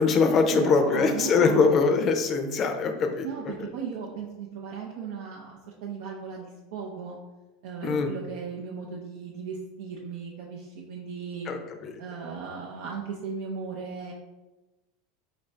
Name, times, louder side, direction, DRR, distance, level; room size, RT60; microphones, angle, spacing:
voice 1, 0.0-3.3 7.8-8.1 11.5-12.0, left 4 dB, 40° left, 5 dB, 0.5 m, -22 dB
voice 2, 0.5-1.7 3.2-7.2 7.6-11.5 12.0-14.1, right 5 dB, 70° right, -1 dB, 0.5 m, -36 dB
4.1 x 2.5 x 3.2 m, 1.1 s
hypercardioid pair, 105°, 0 cm